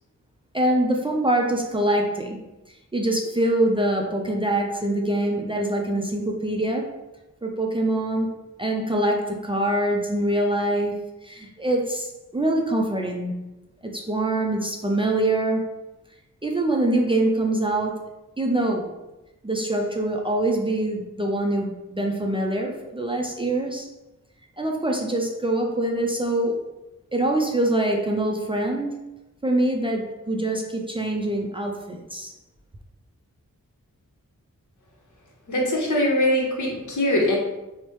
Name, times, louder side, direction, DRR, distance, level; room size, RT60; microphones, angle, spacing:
voice 1, 0.5-2.4 2.7-6.9 7.4-13.4 13.8-15.7 16.4-18.1 18.4-18.9 19.4-23.9 24.6-26.6 27.1-29.0 29.4-32.3, right 1 dB, 20° right, 0 dB, 0.3 m, -24 dB
voice 2, 35.5-37.4, left 1 dB, 70° left, -2 dB, 0.8 m, -22 dB
3.1 x 2.0 x 3.0 m, 1.0 s
cardioid pair, 55°, 31 cm